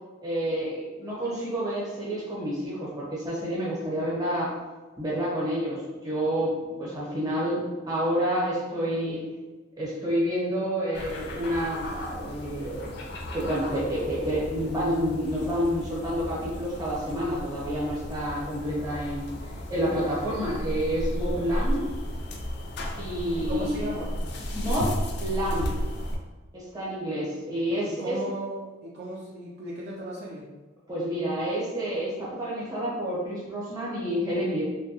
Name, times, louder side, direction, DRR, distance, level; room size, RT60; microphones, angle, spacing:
voice 1, 0.2-4.5 5.0-9.2 9.8-12.9 13.3-19.3 19.7-21.9 23.0-23.8 24.5-25.7 26.5-28.2 30.9-34.7, equal, 20° right, -7 dB, 0.7 m, -29 dB
sound 1, 10.9-26.2, equal, 50° left, 0.4 m, -34 dB
voice 2, 23.5-24.1 27.7-30.5, right 1 dB, 45° right, -6 dB, 0.4 m, -36 dB
2.6 x 2.2 x 2.7 m, 1.3 s
head